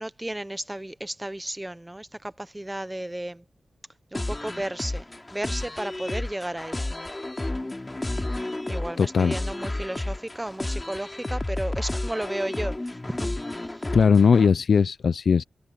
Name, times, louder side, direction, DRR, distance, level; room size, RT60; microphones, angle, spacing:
voice 1, 0.0-3.4 4.1-5.0 5.3-6.8 8.7-12.8 13.1-13.6, right 1 dB, 10° right, 0.7 m, -33 dB
sound 1, 4.1-14.5, left 2 dB, 20° left, 2.9 m, -32 dB
voice 2, 9.0-9.4 13.9-15.4, left 6 dB, 70° left, 0.4 m, -19 dB
wide cardioid pair, 100°, 0 cm